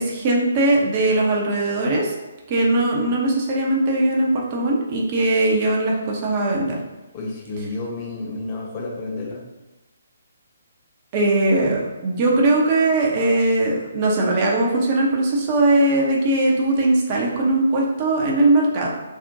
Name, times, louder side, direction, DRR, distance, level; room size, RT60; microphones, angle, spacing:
voice 1, 0.0-2.1 2.5-6.8 11.1-18.9, right 2 dB, 35° right, -2 dB, 0.5 m, -20 dB
voice 2, 7.1-9.4, left 2 dB, 30° left, -1 dB, 0.5 m, -30 dB
2.4 x 2.1 x 2.6 m, 1.1 s
figure-of-eight pair, 140°, 0 cm